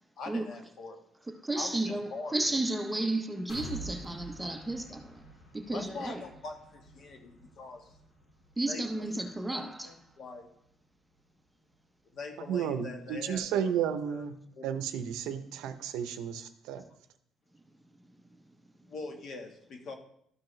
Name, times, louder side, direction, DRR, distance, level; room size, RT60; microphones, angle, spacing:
voice 1, 0.2-1.0 1.6-2.3 5.7-8.0 8.7-9.1 9.5-10.5 12.1-13.6 14.1-14.2 14.6-14.7 18.9-19.9, left 3 dB, 50° left, 1.3 m, -43 dB
voice 2, 1.4-5.3 5.5-6.2 8.6-9.9, right 2 dB, 5° right, 0.6 m, -33 dB
sound 1, 3.5-11.3 11.7-11.8 12.2-12.3, right 1 dB, 70° left, 2.8 m, -48 dB
voice 3, 12.5-14.4 14.6-16.8, right 8 dB, 85° right, 0.7 m, -32 dB
12.5 x 4.7 x 3.2 m
cardioid pair, 145°, 0 cm